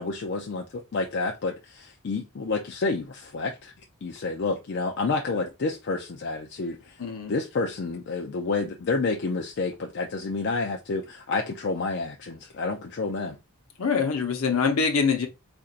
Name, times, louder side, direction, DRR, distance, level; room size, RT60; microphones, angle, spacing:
voice 1, 0.0-3.7 4.0-7.0 7.3-13.4, left 3 dB, 50° left, 0.4 m, -29 dB
voice 2, 7.0-7.4 13.8-15.3, left 5 dB, 75° left, 0.8 m, -24 dB
4.2 x 2.6 x 2.5 m
head